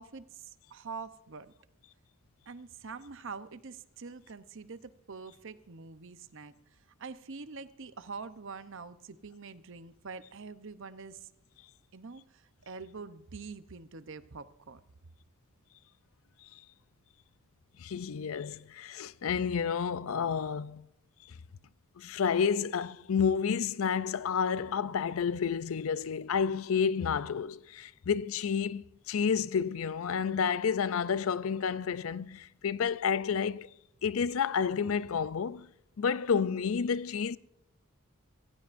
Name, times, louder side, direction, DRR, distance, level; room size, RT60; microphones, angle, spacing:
voice 1, 0.0-1.5 2.5-11.3 11.9-14.8, right 4 dB, 55° right, 0.8 m, -45 dB
voice 2, 17.8-20.9 22.0-33.7 34.0-35.7 36.0-37.4, left 6 dB, 65° left, 0.4 m, -30 dB
25.5 x 15.5 x 2.6 m
head